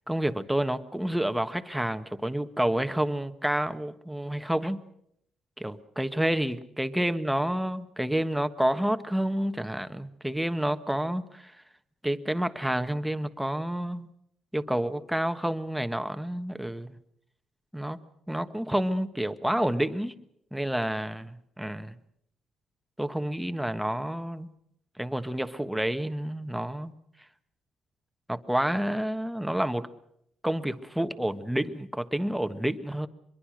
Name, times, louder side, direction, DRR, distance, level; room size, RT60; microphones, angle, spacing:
voice 1, 0.1-4.8 5.6-11.5 12.0-14.1 14.5-17.0 17.7-18.0 18.3-20.1 20.5-22.0 23.0-24.5 25.0-26.9 28.3-29.9 30.4-33.1, right 1 dB, 5° right, 9 dB, 1.3 m, -29 dB
24.0 x 22.5 x 6.4 m, 0.74 s
cardioid pair, 90°, 0 cm